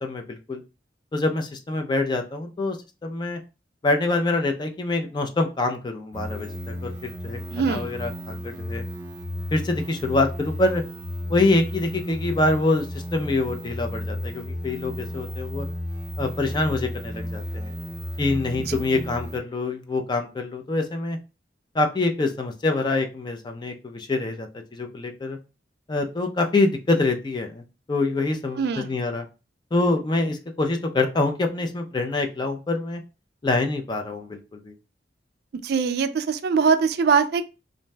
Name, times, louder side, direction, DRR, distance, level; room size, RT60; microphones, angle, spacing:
voice 1, 0.0-0.6 1.1-2.8 3.0-3.4 3.8-7.4 7.7-8.8 9.5-10.8 11.3-15.7 16.2-17.7 18.2-21.2 21.7-25.4 25.9-29.3 29.7-33.0 33.4-34.7, left 2 dB, 25° left, 0.4 m, -25 dB
sound 1, 6.1-19.4, left 1 dB, 10° right, 0.7 m, -33 dB
voice 2, 7.5-7.9 18.7-18.8 28.6-28.9 35.6-37.4, right 5 dB, 60° right, 0.3 m, -22 dB
2.6 x 2.1 x 3.2 m
head